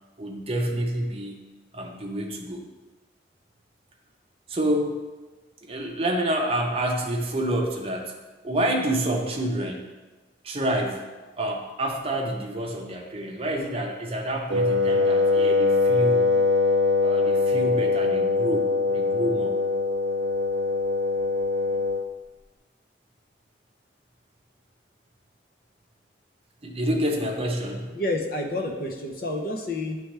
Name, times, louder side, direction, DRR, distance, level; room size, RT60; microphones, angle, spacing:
voice 1, 0.2-1.4 1.7-2.6 4.5-5.0 5.6-8.1 8.4-9.9 10.4-11.1 11.4-16.3 17.0-19.6 26.6-27.9, right 1 dB, 30° right, 1 dB, 0.7 m, -28 dB
Wind instrument woodwind instrument, 14.5-22.1, left 3 dB, 80° right, 0.4 m, -22 dB
voice 2, 27.9-30.0, left 1 dB, 50° left, 2 dB, 0.7 m, -29 dB
8.4 x 3.3 x 3.3 m, 1.2 s
head